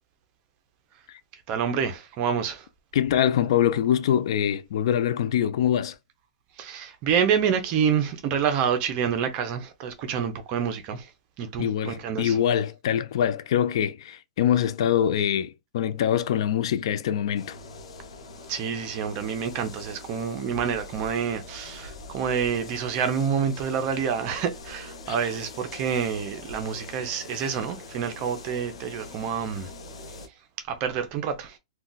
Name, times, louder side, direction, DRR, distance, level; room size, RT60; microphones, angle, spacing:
voice 1, 1.5-2.7 6.6-11.1 11.4-12.4 18.5-29.7 30.7-31.6, right 7 dB, 30° right, 0.6 m, -27 dB
voice 2, 2.9-6.0 11.6-17.6 25.1-25.2, left 10 dB, 60° left, 0.3 m, -24 dB
sound 1, 17.4-30.3, left 2 dB, 80° left, 0.7 m, -43 dB
2.3 x 2.2 x 3.8 m
hypercardioid pair, 155°, 3 cm